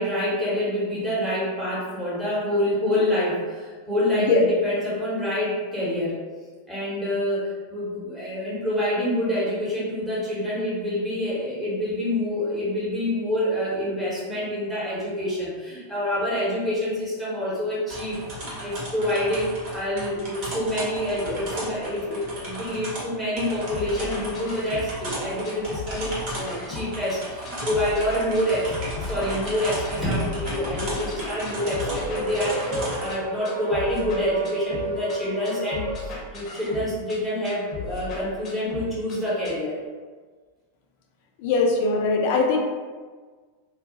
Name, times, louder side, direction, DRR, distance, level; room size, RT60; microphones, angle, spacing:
voice 1, 0.0-6.2 6.7-39.8, left 1 dB, 5° right, -9 dB, 1.1 m, -27 dB
sound 1, 17.9-33.1, right 1 dB, 45° right, 1.0 m, -35 dB
sound 2, 23.7-25.2 25.4-27.2 27.5-33.2 33.5-35.2 35.5-37.2 37.5-39.2 39.5-39.6, left 3 dB, 25° left, 0.8 m, -36 dB
sound 3, 29.9-36.0, right 3 dB, 70° right, 0.8 m, -33 dB
voice 2, 41.4-42.6, left 3 dB, 50° left, 1 dB, 0.4 m, -21 dB
2.3 x 2.1 x 2.6 m, 1.5 s
figure-of-eight pair, 90°, 0 cm